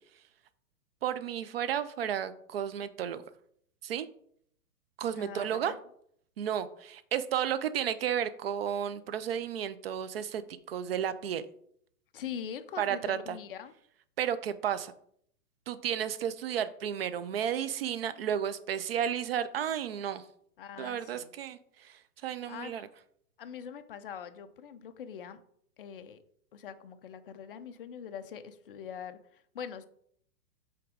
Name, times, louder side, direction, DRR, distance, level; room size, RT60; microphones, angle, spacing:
voice 1, 1.0-3.2 3.8-4.1 5.0-5.7 6.4-10.4 10.7-11.4 12.8-13.4 14.2-14.9 15.7-20.2 20.8-22.8, right 9 dB, 40° right, 13 dB, 0.4 m, -32 dB
voice 2, 5.1-5.8 12.1-13.7 20.6-21.3 22.5-22.7 23.4-25.4 25.8-26.2 26.5-29.8, left 8 dB, 40° left, 10 dB, 0.5 m, -43 dB
7.9 x 3.5 x 4.9 m, 0.66 s
hypercardioid pair, 155°, 46 cm